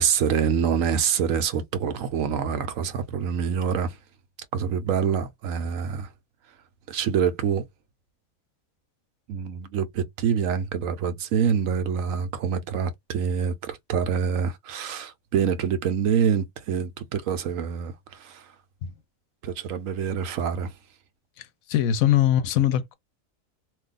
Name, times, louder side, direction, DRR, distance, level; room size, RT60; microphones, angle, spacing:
voice 1, 0.0-4.0 4.5-6.1 6.9-7.6 9.3-18.5 19.4-20.7, right 7 dB, 75° right, 1.0 m, -26 dB
voice 2, 21.7-22.9, left 11 dB, 85° left, 1.1 m, -21 dB
2.7 x 2.4 x 3.7 m
omnidirectional pair, 1.4 m